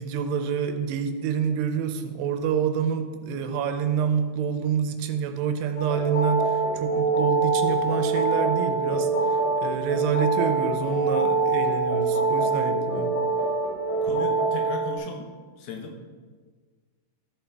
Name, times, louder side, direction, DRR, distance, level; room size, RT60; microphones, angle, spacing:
voice 1, 0.0-13.2, right 7 dB, 85° right, 7 dB, 2.7 m, -27 dB
sound 1, 5.8-15.0, right 3 dB, 65° left, 1.2 m, -24 dB
voice 2, 14.0-15.3 15.6-16.0, left 5 dB, 80° left, 2 dB, 2.9 m, -37 dB
13.5 x 5.6 x 3.5 m, 1.5 s
omnidirectional pair, 4.8 m